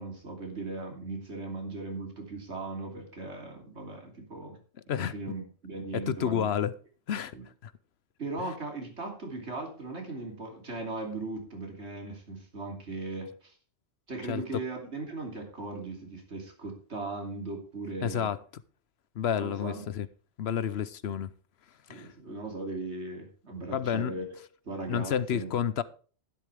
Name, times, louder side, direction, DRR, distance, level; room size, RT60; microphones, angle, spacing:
voice 1, 0.0-4.6 4.9-6.5 7.3-7.5 8.2-13.5 14.1-18.3 19.4-19.8 21.9-24.4 24.6-25.5, right 3 dB, 75° right, 3.3 m, -38 dB
voice 2, 5.9-6.7 7.1-7.3 7.6-7.7 14.3-14.4 18.0-18.4 19.2-20.1 20.4-21.3 21.9-22.1 23.7-24.1 24.9-25.8, left 8 dB, 65° left, 0.9 m, -30 dB
11.5 x 10.5 x 3.4 m
omnidirectional pair, 1.2 m